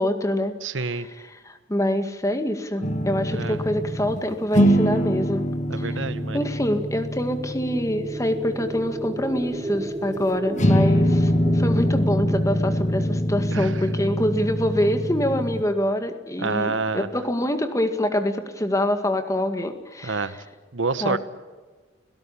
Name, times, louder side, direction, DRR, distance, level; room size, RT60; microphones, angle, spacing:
voice 1, 0.0-0.5 0.9-5.5 5.7-6.0 6.3-20.4 21.0-21.2, left 1 dB, 15° left, 8 dB, 2.0 m, -25 dB
voice 2, 0.6-1.1 3.3-3.6 5.7-6.4 13.5-13.8 16.4-17.1 20.0-20.4 20.7-21.2, right 4 dB, 90° right, 14 dB, 1.2 m, -27 dB
sound 1, 2.8-4.2 4.5-10.3 10.6-15.6, equal, 40° left, 1.3 m, -24 dB
sound 2, 7.2-15.3, right 1 dB, 20° right, 0.9 m, -35 dB
30.0 x 17.5 x 8.6 m, 1.4 s
head